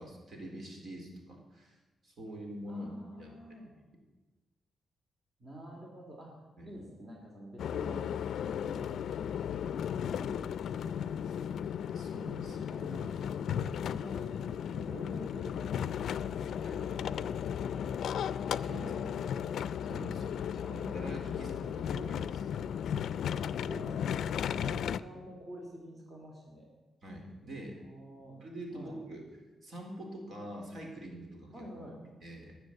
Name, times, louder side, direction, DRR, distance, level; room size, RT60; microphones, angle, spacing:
voice 1, 0.0-1.8 2.0-2.9 3.2-3.3 6.6-6.8 11.9-12.6 16.6-16.8 18.6-19.3 19.8-22.4 24.6-24.7 27.0-27.8 28.4-29.3 29.6-31.7 32.2-32.6, right 1 dB, 50° right, 1 dB, 3.8 m, -45 dB
voice 2, 2.7-3.7 5.4-6.4 6.6-8.1 8.4-11.3 12.5-19.6 20.6-20.8 21.3-22.2 23.3-26.7 27.8-28.4 28.7-29.0 31.5-32.0, equal, 25° right, -1 dB, 2.8 m, -49 dB
sound 1, 7.6-25.0, left 8 dB, 75° left, 0.4 m, -35 dB
19.0 x 7.2 x 8.0 m, 1.2 s
wide cardioid pair, 135°, 0 cm